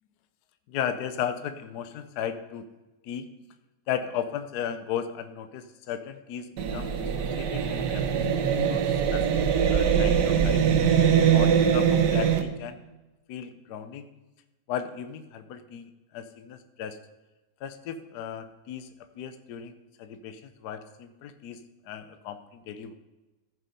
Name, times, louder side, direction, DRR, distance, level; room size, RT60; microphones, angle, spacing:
voice 1, 0.7-2.6 3.0-3.3 3.9-6.9 7.2-8.8 9.1-10.6 11.2-12.8 13.3-14.1 14.7-17.0 17.6-19.7 20.0-22.9, left 8 dB, 70° left, 10 dB, 1.2 m, -36 dB
sound 1, 6.6-12.4, right 8 dB, 75° right, 1.4 m, -22 dB
14.5 x 5.5 x 5.4 m, 1.1 s
omnidirectional pair, 1.9 m